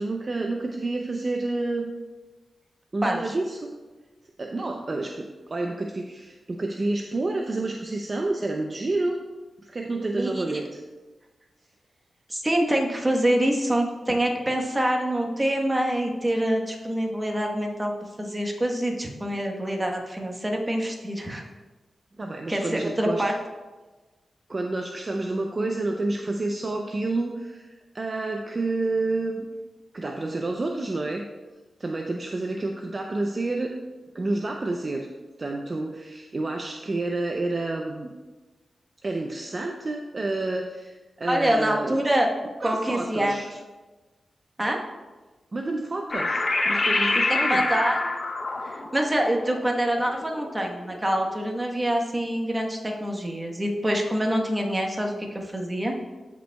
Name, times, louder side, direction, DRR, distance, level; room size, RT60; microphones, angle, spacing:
voice 1, 0.0-1.9 2.9-3.7 4.4-9.2 9.6-10.8 22.2-23.2 24.5-29.5 29.9-31.3 31.8-33.7 34.1-35.1 35.4-38.1 39.0-42.0 42.6-43.5 45.5-47.8, right 2 dB, 40° right, 2 dB, 0.5 m, -29 dB
voice 2, 3.0-3.3 10.2-10.4 12.3-17.9 18.2-21.5 22.5-23.3 41.3-42.3 42.6-43.4 44.6-44.8 47.5-48.0 48.6-56.0, right 1 dB, 15° right, 1 dB, 1.2 m, -25 dB
sound 1, 46.1-51.0, left 2 dB, 45° left, 0.8 m, -26 dB
14.0 x 5.2 x 2.3 m, 1.2 s
wide cardioid pair, 95°, 0 cm